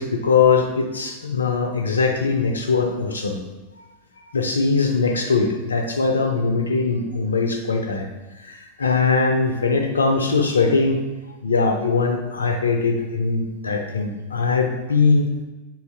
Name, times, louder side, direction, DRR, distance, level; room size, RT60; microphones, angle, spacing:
voice 1, 0.0-3.4 4.3-8.1 8.4-11.0 11.4-15.3, left 4 dB, 75° left, 4 dB, 0.4 m, -21 dB
4.1 x 2.3 x 2.6 m, 1.1 s
figure-of-eight pair, 90°, 0 cm